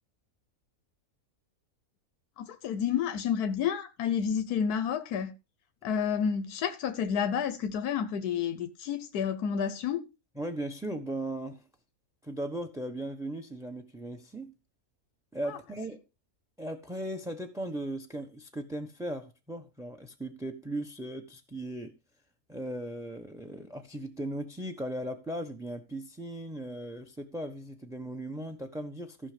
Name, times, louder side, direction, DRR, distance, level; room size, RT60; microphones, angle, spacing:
voice 1, 2.4-5.4 5.8-10.1 15.4-15.6, left 7 dB, 85° left, 1.4 m, -30 dB
voice 2, 10.4-11.7 12.2-14.5 15.3-16.0 16.6-22.0 22.5-29.3, right 1 dB, ahead, 1.0 m, -37 dB
15.0 x 6.1 x 5.1 m
omnidirectional pair, 1.6 m